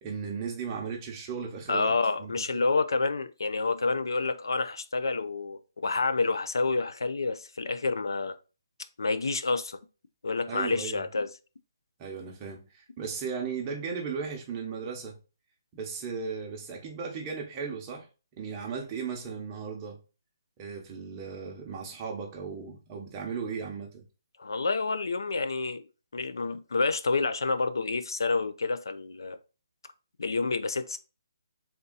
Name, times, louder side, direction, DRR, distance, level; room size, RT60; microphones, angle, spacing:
voice 1, 0.0-1.9 2.2-2.6 10.5-11.0 12.0-15.2 15.7-18.1 18.4-20.0 20.6-24.0, right 5 dB, 20° right, 0.8 m, -36 dB
voice 2, 1.7-8.4 9.0-9.8 10.2-11.3 24.4-25.9 26.1-29.4 30.2-31.0, left 3 dB, 90° left, 0.5 m, -28 dB
3.6 x 2.7 x 3.9 m
hypercardioid pair, 165°, 2 cm